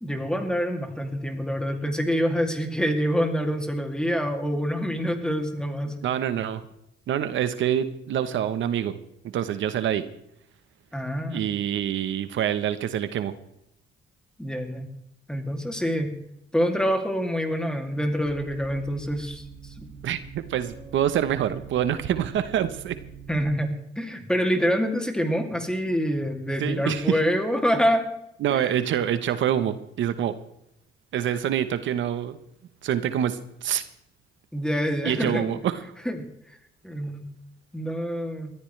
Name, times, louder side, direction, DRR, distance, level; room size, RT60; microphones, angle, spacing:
voice 1, 0.0-5.9 10.9-11.5 14.4-14.9 15.3-16.1 16.5-19.9 23.3-28.1 28.5-28.7 34.5-35.4 36.0-36.2 36.8-37.2 37.7-38.5, equal, 5° left, 4 dB, 2.6 m, -26 dB
voice 2, 6.0-6.6 7.1-9.0 9.3-10.0 11.3-13.3 20.0-23.0 26.6-27.2 28.4-30.3 31.1-32.4 32.8-33.8 35.0-35.7, right 10 dB, 75° right, 11 dB, 1.0 m, -26 dB
sound 1, 18.2-23.5, right 7 dB, 50° right, 2.1 m, -44 dB
21.0 x 14.0 x 3.3 m, 0.78 s
cardioid pair, 90°, 20 cm